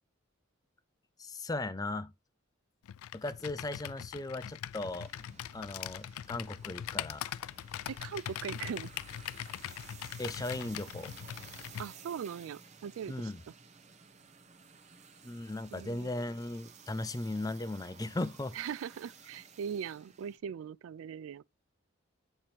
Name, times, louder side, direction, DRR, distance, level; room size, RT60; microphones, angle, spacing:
voice 1, 1.2-2.1 3.1-5.1 5.5-7.3 10.2-11.1 13.1-13.4 15.2-18.5, left 2 dB, 15° left, 0.4 m, -37 dB
Computer keyboard, 2.9-11.9, left 10 dB, 90° left, 0.3 m, -42 dB
sound 1, 4.7-20.4, right 6 dB, 35° right, 0.8 m, -55 dB
voice 2, 7.9-8.9 11.8-13.3 15.7-16.1 18.5-21.4, right 7 dB, 75° right, 0.3 m, -40 dB
8.5 x 4.5 x 2.8 m
head